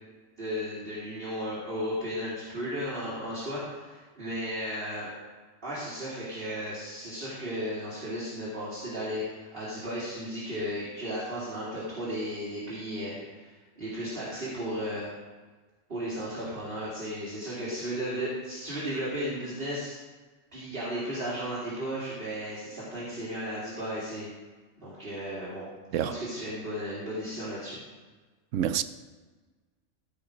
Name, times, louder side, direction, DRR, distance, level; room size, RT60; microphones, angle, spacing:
voice 1, 0.4-5.1 5.6-15.1 15.9-20.0 20.5-24.3 24.8-25.7 26.0-27.8, equal, 45° right, 3.0 m, -35 dB
voice 2, 28.5-28.8, right 10 dB, 75° right, 0.9 m, -27 dB
15.5 x 5.7 x 5.1 m
omnidirectional pair, 1.3 m